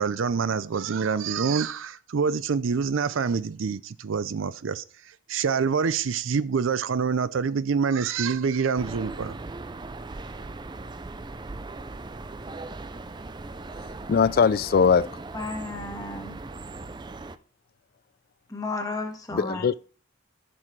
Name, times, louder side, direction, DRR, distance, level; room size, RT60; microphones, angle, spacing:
voice 1, 0.0-9.3, right 5 dB, 80° right, 0.5 m, -26 dB
sound 1, 8.8-17.4, right 3 dB, 20° right, 0.4 m, -39 dB
voice 2, 14.1-15.1 19.3-19.7, left 6 dB, 50° left, 0.4 m, -20 dB
voice 3, 15.3-16.4 18.5-19.7, left 2 dB, 20° left, 1.5 m, -33 dB
15.0 x 6.1 x 3.2 m
head